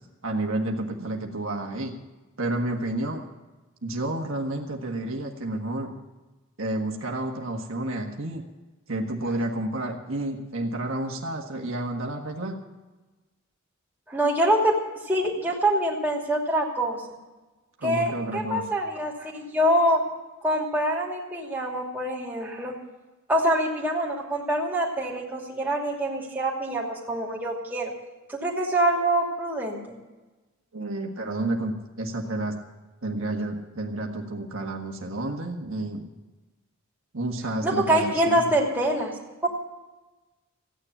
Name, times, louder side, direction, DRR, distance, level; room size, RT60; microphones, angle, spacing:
voice 1, 0.2-1.9 2.4-3.3 3.8-5.9 6.6-8.5 8.9-12.6 17.8-18.6 30.7-32.5 33.0-36.1 37.1-38.5, right 1 dB, 65° right, 1 dB, 1.6 m, -30 dB
voice 2, 14.1-14.8 15.0-17.0 17.8-20.0 20.4-22.7 23.3-27.9 28.3-30.0 37.6-39.1 39.4-39.5, right 1 dB, 10° right, -3 dB, 2.7 m, -25 dB
15.5 x 9.8 x 7.2 m, 1.2 s
head